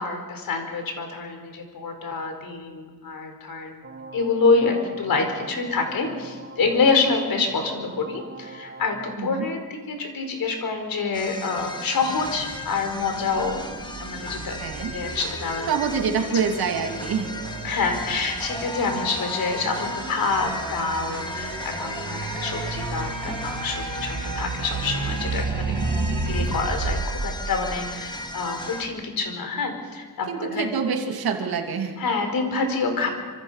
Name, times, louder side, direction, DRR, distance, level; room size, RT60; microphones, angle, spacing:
voice 1, 0.0-3.8 4.1-13.6 14.0-14.6 14.9-15.7 17.6-25.7 26.1-30.8 32.0-33.1, left 4 dB, 70° left, 5 dB, 4.7 m, -26 dB
sound 1, 3.8-9.1, right 4 dB, 30° right, 1.6 m, -42 dB
sound 2, 11.1-28.8, left 2 dB, 15° left, 2.2 m, -35 dB
sound 3, 12.1-28.4, right 3 dB, 55° right, 2.4 m, -33 dB
voice 2, 14.6-14.9 15.7-17.3 25.7-26.1 30.3-32.0, right 6 dB, 85° right, 3 dB, 2.9 m, -26 dB
26.0 x 26.0 x 5.8 m, 1.5 s
wide cardioid pair, 125°, 36 cm